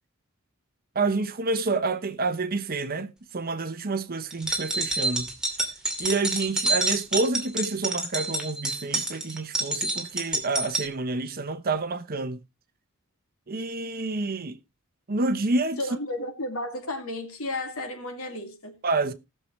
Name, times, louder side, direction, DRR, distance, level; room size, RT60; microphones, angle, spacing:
voice 1, 0.9-5.3 6.0-12.4 13.5-14.6 15.1-15.8 18.8-19.1, right 3 dB, 45° right, 0.8 m, -28 dB
sound 1, 4.3-10.9, right 2 dB, 5° right, 2.5 m, -28 dB
voice 2, 15.8-18.8, left 1 dB, 65° left, 2.4 m, -33 dB
19.0 x 6.6 x 3.1 m
head